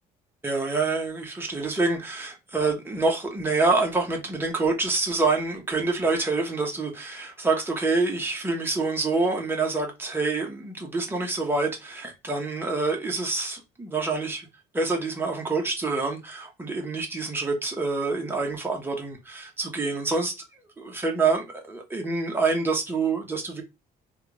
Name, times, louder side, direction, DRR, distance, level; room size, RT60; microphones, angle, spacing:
voice 1, 0.4-14.5 14.7-20.3 20.8-23.6, right 3 dB, 15° right, 1.2 m, -26 dB
3.2 x 2.6 x 3.2 m
cardioid pair, 110°, 17 cm